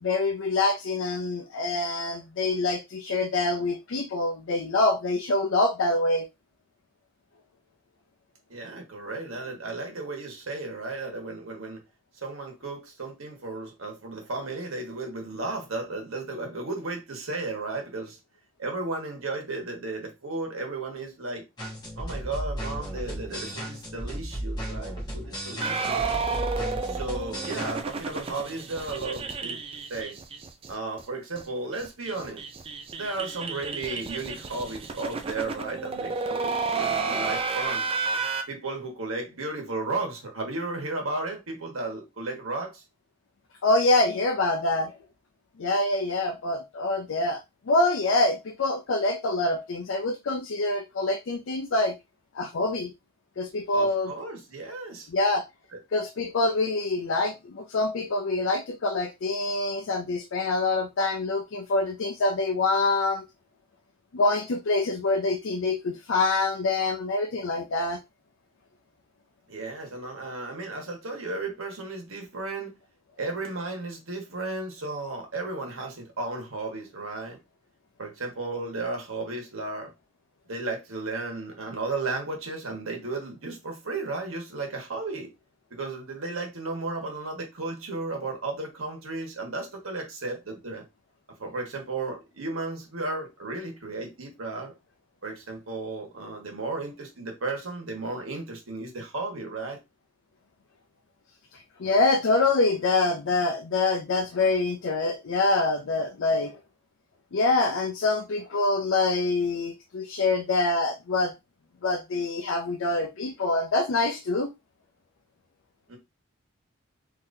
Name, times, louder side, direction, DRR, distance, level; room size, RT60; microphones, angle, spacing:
voice 1, 0.0-6.3 43.6-44.9 45.6-52.0 52.3-52.9 53.4-54.1 55.1-55.5 55.9-63.2 64.1-68.0 101.5-106.6 107.3-111.3 111.8-114.5, left 2 dB, 70° left, 0.5 m, -25 dB
voice 2, 8.5-11.8 12.2-18.2 18.6-21.5 22.0-26.1 26.8-29.6 29.9-30.2 30.7-32.4 33.0-37.9 38.5-42.8 53.7-55.1 69.5-72.7 73.2-77.4 78.0-79.9 80.5-85.3 85.7-90.8 91.4-94.7 95.2-99.8 115.9-116.0, right 3 dB, 80° right, 1.3 m, -34 dB
sound 1, 21.6-27.8, right 1 dB, 20° left, 1.3 m, -35 dB
sound 2, 25.6-30.7 31.0-31.1 31.4-31.5 31.7-38.4, right 4 dB, 25° right, 0.4 m, -31 dB
3.8 x 2.8 x 2.6 m
head